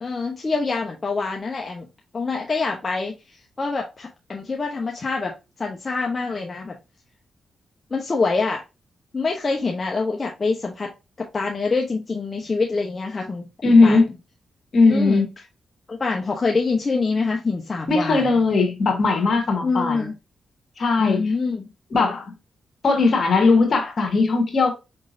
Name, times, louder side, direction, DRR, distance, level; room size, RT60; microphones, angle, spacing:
voice 1, 0.0-1.9 2.1-6.8 7.9-8.6 9.1-10.9 11.2-13.5 13.8-14.1 14.9-15.3 15.9-18.4 19.6-20.1 21.0-21.7, left 4 dB, 40° left, 0.8 m, -25 dB
voice 2, 13.6-14.1 14.7-15.2 17.9-20.1 20.8-21.3 21.9-22.3 22.8-24.7, left 3 dB, 60° left, 1.6 m, -18 dB
5.0 x 3.7 x 2.6 m
supercardioid pair, 55°, 0 cm